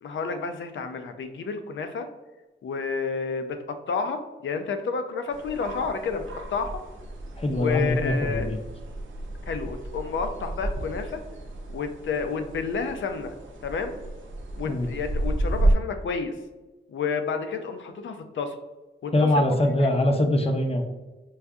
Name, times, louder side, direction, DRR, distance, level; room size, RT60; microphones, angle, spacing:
voice 1, 0.0-2.1 2.6-6.3 6.5-6.8 7.6-8.5 9.5-11.2 11.7-13.3 13.6-13.9 14.6-16.4 16.9-18.6 19.0-19.9, left 5 dB, 80° left, 7 dB, 0.5 m, -30 dB
sound 1, 5.3-15.7, right 1 dB, 90° right, 0.6 m, -32 dB
voice 2, 7.4-8.6 14.6-14.9 19.1-20.8, left 1 dB, 30° left, 4 dB, 0.5 m, -23 dB
4.7 x 2.6 x 2.3 m, 1.1 s
wide cardioid pair, 105°, 20 cm